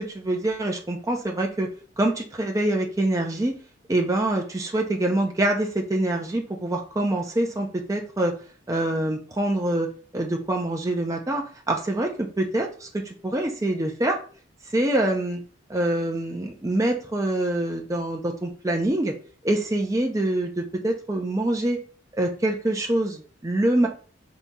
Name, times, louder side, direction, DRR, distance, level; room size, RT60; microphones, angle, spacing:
voice 1, 0.0-1.7 2.0-3.6 3.9-8.3 8.7-14.2 14.7-15.4 15.7-19.1 19.4-21.8 22.2-23.9, right 1 dB, 15° right, 1 dB, 0.5 m, -25 dB
4.0 x 2.8 x 3.5 m, 0.40 s
head